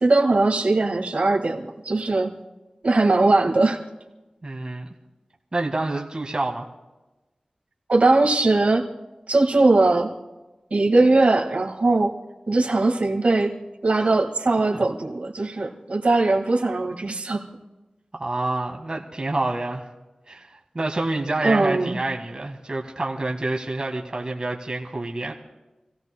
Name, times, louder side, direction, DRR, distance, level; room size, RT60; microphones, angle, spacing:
voice 1, 0.0-2.3 2.8-3.8 7.9-8.8 9.3-10.1 10.7-12.1 12.5-13.5 13.8-17.4 21.4-22.0, right 2 dB, 70° right, 0 dB, 1.7 m, -20 dB
voice 2, 4.4-4.9 5.5-6.6 14.0-14.1 18.1-19.8 20.3-25.3, right 2 dB, 40° right, 0 dB, 1.5 m, -28 dB
28.5 x 16.0 x 2.2 m, 1.1 s
wide cardioid pair, 85°, 2 cm